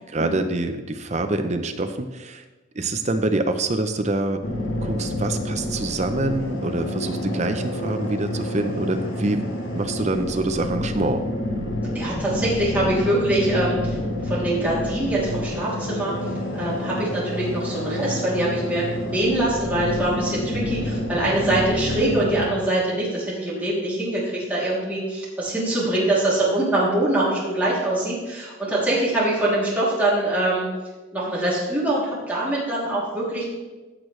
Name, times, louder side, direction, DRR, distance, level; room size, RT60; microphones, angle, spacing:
voice 1, 0.0-2.4 2.7-4.4 4.8-9.4 9.7-11.2, right 2 dB, 35° right, 7 dB, 0.6 m, -25 dB
sound 1, 4.4-22.4, left 1 dB, 70° left, 1.5 m, -28 dB
voice 2, 11.9-14.0 14.2-16.1 16.5-30.6 31.1-33.5, right 1 dB, 10° right, -8 dB, 2.8 m, -23 dB
15.0 x 6.3 x 3.2 m, 1.2 s
head